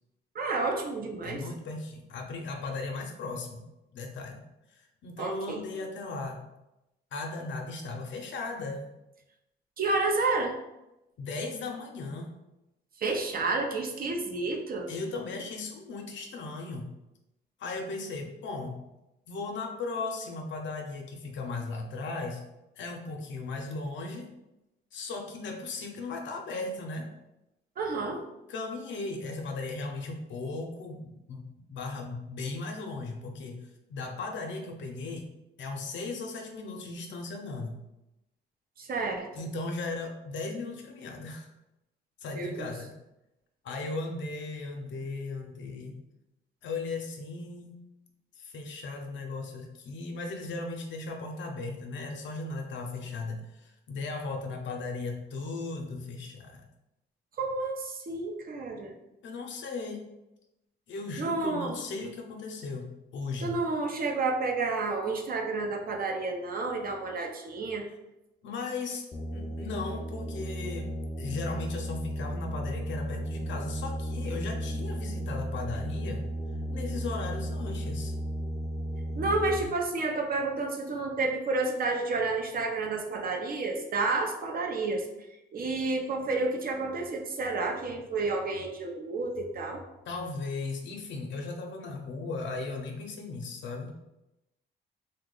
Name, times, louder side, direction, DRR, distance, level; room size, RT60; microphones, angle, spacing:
voice 1, 0.3-1.4 5.2-5.6 9.8-10.5 13.0-14.9 27.8-28.2 38.8-39.3 42.4-42.7 57.4-58.9 61.2-61.7 63.4-67.8 79.2-85.1 85.5-89.8, right 3 dB, 50° right, 3 dB, 0.6 m, -30 dB
voice 2, 1.2-3.6 3.9-4.4 4.7-6.5 7.1-8.8 11.2-12.3 14.9-16.9 17.6-18.8 19.3-22.4 22.8-24.3 24.9-27.1 28.5-33.6 33.9-35.3 35.6-37.8 39.3-41.5 42.2-42.9 43.6-46.0 46.6-47.7 48.4-56.6 59.2-60.0 60.9-63.5 68.4-70.9 71.2-76.2 76.7-78.1 90.1-94.0, left 3 dB, 70° left, 3 dB, 0.6 m, -37 dB
sound 1, 69.1-79.7, equal, 20° left, 0.3 m, -34 dB
2.8 x 2.2 x 3.7 m, 0.92 s
cardioid pair, 90°, 20 cm